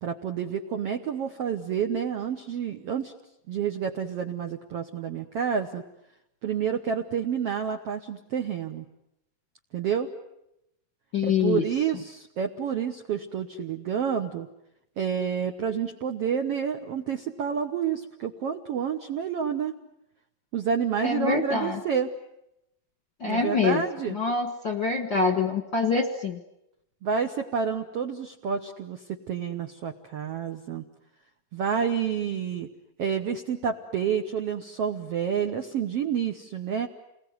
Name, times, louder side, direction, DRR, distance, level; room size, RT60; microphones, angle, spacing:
voice 1, 0.0-3.1 3.5-5.8 6.4-8.8 9.7-10.1 11.2-14.5 15.0-19.7 20.5-22.1 23.3-24.2 27.0-30.8 31.5-32.7 33.0-36.9, right 7 dB, 70° right, 5 dB, 1.4 m, -29 dB
voice 2, 11.1-11.6 21.0-21.8 23.2-26.4, left 5 dB, 50° left, 5 dB, 1.4 m, -25 dB
29.5 x 21.0 x 9.6 m, 0.84 s
omnidirectional pair, 4.3 m